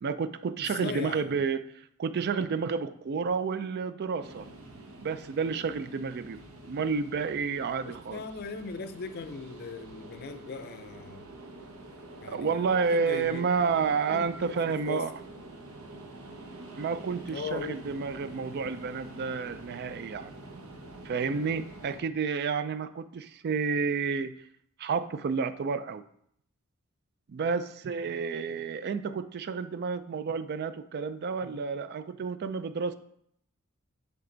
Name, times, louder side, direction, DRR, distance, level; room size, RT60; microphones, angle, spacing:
voice 1, 0.0-4.5 5.0-6.4 6.7-8.2 12.2-15.1 16.8-20.3 21.0-24.3 24.8-26.0 27.3-33.0, right 5 dB, 50° right, 0.4 m, -30 dB
voice 2, 0.6-1.4 7.8-11.3 12.2-13.5 14.1-14.6 14.9-15.1 17.3-17.8, left 5 dB, 50° left, 0.5 m, -39 dB
sound 1, 4.2-22.0, right 2 dB, 75° right, 1.0 m, -47 dB
10.0 x 3.4 x 3.8 m
head